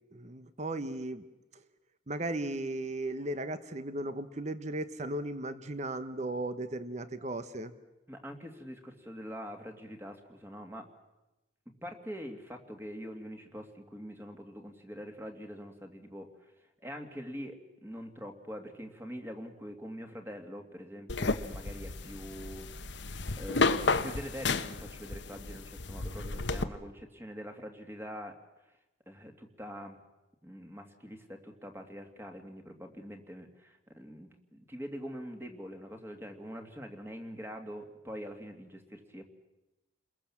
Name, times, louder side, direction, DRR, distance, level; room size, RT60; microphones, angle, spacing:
voice 1, 0.1-1.2 2.1-7.7, right 1 dB, 35° right, 12 dB, 1.1 m, -36 dB
voice 2, 8.1-10.9 11.8-16.5 16.8-22.7 23.4-28.4 29.1-30.0 30.4-39.2, equal, 10° right, 4 dB, 2.5 m, -44 dB
sound 1, 21.1-26.6, left 3 dB, 70° left, 1.1 m, -32 dB
30.0 x 21.5 x 7.4 m, 1.0 s
head